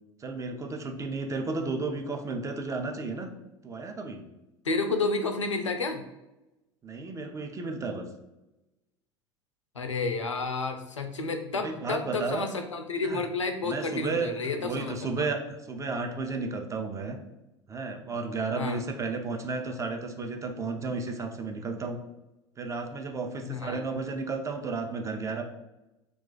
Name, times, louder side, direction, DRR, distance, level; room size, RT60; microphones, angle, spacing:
voice 1, 0.2-3.3 3.6-4.2 6.8-8.1 11.5-12.5 13.0-13.2 13.6-17.2 17.7-22.0 22.6-25.4, right 3 dB, 20° right, 3 dB, 0.5 m, -33 dB
voice 2, 4.6-6.0 9.8-15.0 18.6-18.8 23.5-23.8, left 3 dB, 90° left, 6 dB, 0.4 m, -30 dB
2.4 x 2.3 x 4.0 m, 0.98 s
figure-of-eight pair, 80°, 15 cm